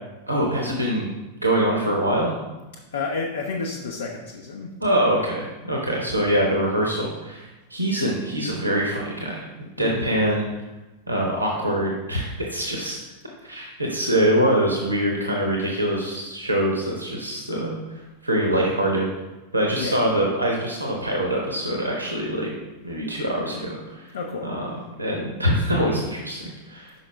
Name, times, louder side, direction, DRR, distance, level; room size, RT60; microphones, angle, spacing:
voice 1, 0.3-1.1 1.4-2.4 4.8-10.4 11.1-13.0 13.4-19.1 19.5-22.5 22.8-24.1 24.4-26.9, right 1 dB, 85° right, -1 dB, 0.8 m, -24 dB
voice 2, 2.7-4.8 9.8-10.1 19.8-20.0 24.1-24.5, left 4 dB, 65° left, 0 dB, 0.5 m, -31 dB
5.7 x 5.2 x 3.2 m, 1.1 s
figure-of-eight pair, 90°, 0 cm